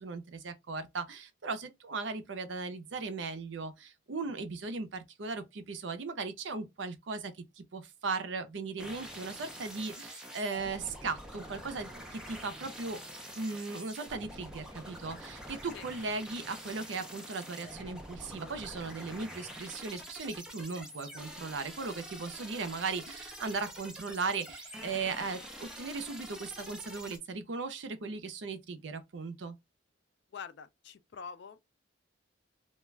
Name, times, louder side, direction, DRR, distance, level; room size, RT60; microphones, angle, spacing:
voice 1, 0.0-13.0 13.4-29.6, right 4 dB, 70° right, 0.5 m, -37 dB
sound 1, 8.8-27.2, equal, 5° right, 0.5 m, -46 dB
voice 2, 30.3-31.8, left 6 dB, 60° left, 0.3 m, -46 dB
2.3 x 2.2 x 3.1 m
head